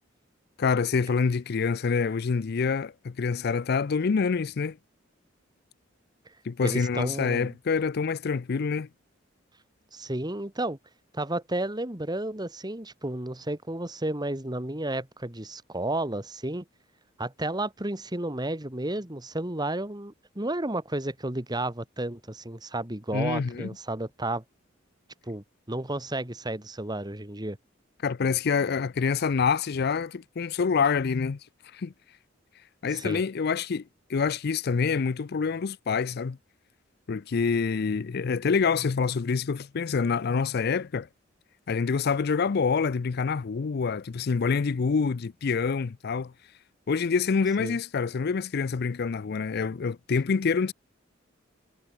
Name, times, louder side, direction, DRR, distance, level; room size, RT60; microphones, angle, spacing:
voice 1, 0.6-4.8 6.4-8.9 23.1-23.7 28.0-31.4 31.7-31.9 32.8-33.8 34.1-36.4 37.1-41.1 41.7-46.3 46.9-50.7, left 5 dB, 55° left, 0.5 m, -26 dB
voice 2, 6.6-7.5 9.9-10.8 11.1-16.6 17.2-24.4 25.2-27.6 32.9-33.2 47.6-47.8, right 1 dB, 20° right, 2.3 m, -32 dB
head